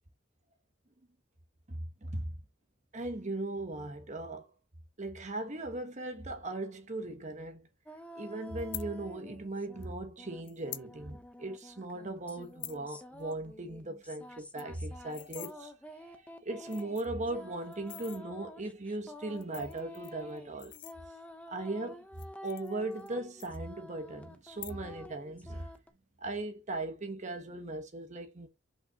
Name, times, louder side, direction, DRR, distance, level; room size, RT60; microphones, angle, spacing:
voice 1, 1.7-2.3 2.9-4.5 5.0-7.7 8.1-15.7 16.0-20.7 21.5-22.1 22.4-25.7 26.2-28.5, right 2 dB, 35° right, 1.1 m, -38 dB
sound 1, 7.9-9.9 10.2-25.9, left 1 dB, 5° left, 0.8 m, -49 dB
sound 2, 8.6-8.9 9.8-9.9 10.4-10.9 11.3-11.4 11.6-11.8 12.3-12.8 13.2-13.3 13.6-13.7 14.0-14.1 14.4-15.5 16.2-16.3 16.6-17.2 17.7-18.2 19.2-21.4 22.0-23.1 23.4-24.0 24.5-25.1 25.3-25.8, left 16 dB, 60° left, 0.6 m, -46 dB
5.6 x 5.5 x 3.5 m
head